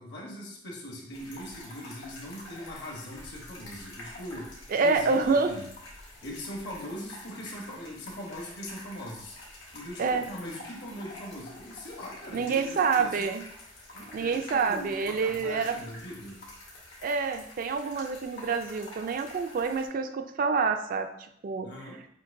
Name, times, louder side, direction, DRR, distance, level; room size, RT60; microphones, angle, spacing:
voice 1, 0.0-5.7 6.2-9.4 9.7-13.2 13.9-16.4 21.6-22.0, left 1 dB, 60° left, -1 dB, 1.0 m, -41 dB
sound 1, 1.1-19.9, left 1 dB, 80° left, 1.5 m, -47 dB
voice 2, 4.7-5.5 10.0-10.2 12.3-13.4 14.1-15.7 17.0-21.1 21.4-21.7, right 4 dB, 45° right, 8 dB, 0.3 m, -27 dB
6.6 x 2.6 x 2.6 m, 0.73 s
head